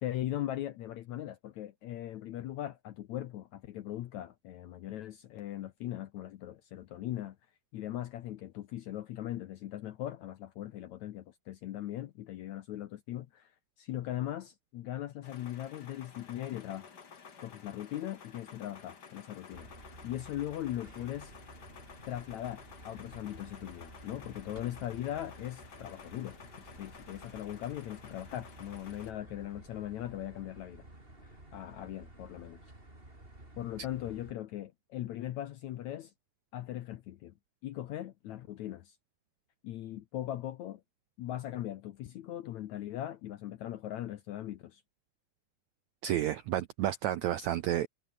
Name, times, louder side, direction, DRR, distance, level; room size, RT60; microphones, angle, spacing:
voice 1, 0.0-7.4 7.7-16.9 17.4-21.3 22.0-30.8 31.2-32.6 33.6-36.1 36.5-37.3 37.6-39.0 39.6-40.8 41.2-44.8, left 13 dB, 70° left, 1.8 m, -39 dB
sound 1, 15.2-29.1, left 6 dB, 35° left, 1.8 m, -53 dB
sound 2, 19.5-34.3, right 1 dB, 15° right, 5.3 m, -53 dB
voice 2, 46.0-47.9, right 12 dB, 80° right, 1.6 m, -31 dB
omnidirectional pair, 4.3 m